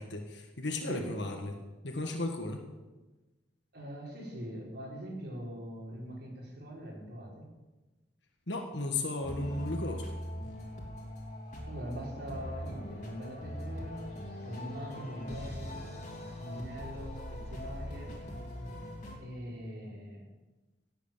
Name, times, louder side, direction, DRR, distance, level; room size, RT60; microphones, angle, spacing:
voice 1, 0.0-1.5 1.8-2.6 8.5-10.0, left 2 dB, 70° left, 3 dB, 1.6 m, -35 dB
voice 2, 3.7-7.5 11.6-15.8 16.4-18.1 19.2-20.3, equal, 60° right, -2 dB, 4.7 m, -42 dB
sound 1, 9.2-19.2, equal, 40° left, 3.2 m, -41 dB
17.0 x 8.2 x 7.4 m, 1.2 s
head